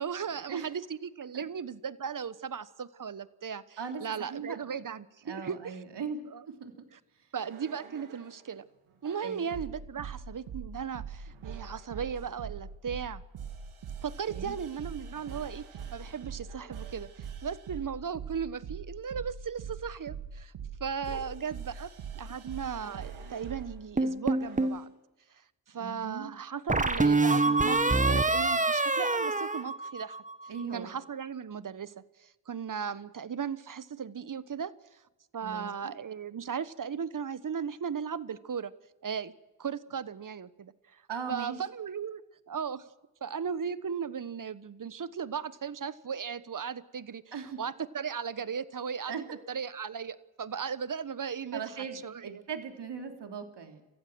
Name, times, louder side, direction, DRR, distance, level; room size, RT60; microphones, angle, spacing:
voice 1, 0.0-5.8 6.3-6.4 6.9-7.0 7.3-8.6 9.0-13.2 14.0-15.6 15.9-20.5 20.8-21.9 22.1-24.9 25.7-30.2 30.7-31.9 32.2-34.7 35.3-38.7 39.0-39.3 39.6-41.0 41.3-42.2 42.5-42.8 43.2-51.7 52.0-52.4, right 7 dB, 40° right, 16 dB, 1.2 m, -37 dB
voice 2, 3.8-4.6 5.2-6.2 6.5-6.7 9.2-9.5 9.9-10.0 14.3-14.6 21.1-21.2 25.7-26.3 30.5-30.9 35.4-35.9 41.1-41.6 47.3-47.6 49.1-49.2 51.5-53.8, right 6 dB, 55° right, 4 dB, 3.2 m, -39 dB
sound 1, 7.4-8.4 9.0-23.7 24.4-24.8, right 7 dB, 75° right, 3.0 m, -42 dB
sound 2, 24.0-24.8 26.7-30.3, right 3 dB, 15° right, 1.4 m, -26 dB
27.0 x 15.0 x 6.3 m, 1.1 s
hypercardioid pair, 45°, 50 cm